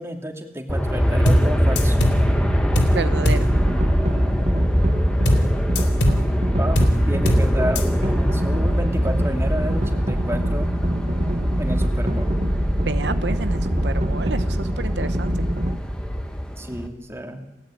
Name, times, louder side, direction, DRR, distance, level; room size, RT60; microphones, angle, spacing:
voice 1, 0.0-2.0 6.5-10.7 11.6-12.3 16.6-17.4, right 1 dB, 15° right, 4 dB, 2.8 m, -30 dB
Aircraft, 0.7-16.9, equal, 5° left, 1.9 m, -23 dB
sound 1, 1.3-1.5 1.8-2.2 2.8-3.0 3.3-3.5 5.3-5.5 5.8-6.2 6.8-7.0 7.3-7.5 7.8-7.9, equal, 90° left, 3.7 m, -19 dB
sound 2, 1.7-15.8, right 1 dB, 40° right, 1.6 m, -26 dB
voice 2, 2.9-3.4 12.8-15.3, right 3 dB, 80° right, 11 dB, 1.0 m, -29 dB
30.0 x 18.5 x 9.1 m, 1.1 s
head